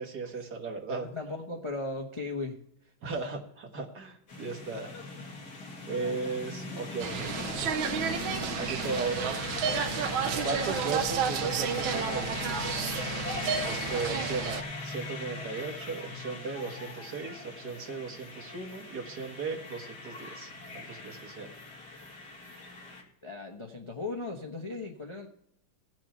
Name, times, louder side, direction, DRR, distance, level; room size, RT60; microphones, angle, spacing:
voice 1, 0.0-1.1 3.0-4.9 5.9-7.4 8.5-9.4 10.4-12.6 13.6-21.5, right 4 dB, 55° right, 0 dB, 2.1 m, -36 dB
voice 2, 1.0-2.6 3.1-3.2 23.2-25.3, left 3 dB, 35° left, 2 dB, 0.4 m, -37 dB
sound 1, 4.3-23.0, left 3 dB, 50° left, 2.7 m, -39 dB
sound 2, 7.0-14.6, right 7 dB, 80° right, 1.6 m, -31 dB
17.0 x 6.1 x 4.4 m, 0.75 s
omnidirectional pair, 2.2 m